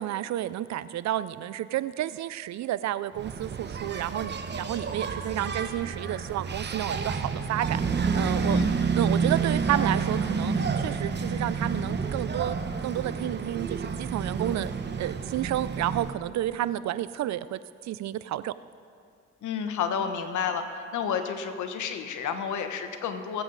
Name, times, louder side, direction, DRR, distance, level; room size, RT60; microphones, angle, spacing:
voice 1, 0.0-7.8 8.1-8.6 9.0-12.6 12.8-14.7 15.0-18.5, right 13 dB, 65° right, 16 dB, 0.5 m, -31 dB
Engine, 3.2-16.2, right 5 dB, 35° right, 0.9 m, -29 dB
voice 2, 19.4-23.4, left 7 dB, 75° left, 7 dB, 1.2 m, -31 dB
21.0 x 8.1 x 4.0 m, 2.3 s
cardioid pair, 90°, 30 cm